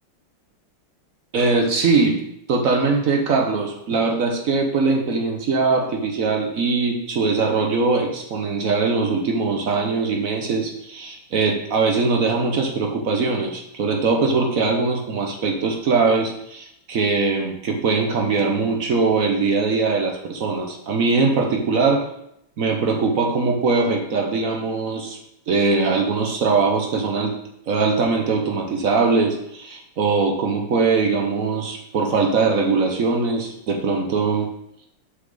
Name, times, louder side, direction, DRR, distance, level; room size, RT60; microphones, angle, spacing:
voice 1, 1.3-2.2 2.5-22.0 22.6-25.2 25.5-27.4 27.7-34.5, right 4 dB, 60° right, 2 dB, 0.9 m, -21 dB
6.5 x 5.8 x 3.8 m, 0.77 s
omnidirectional pair, 2.4 m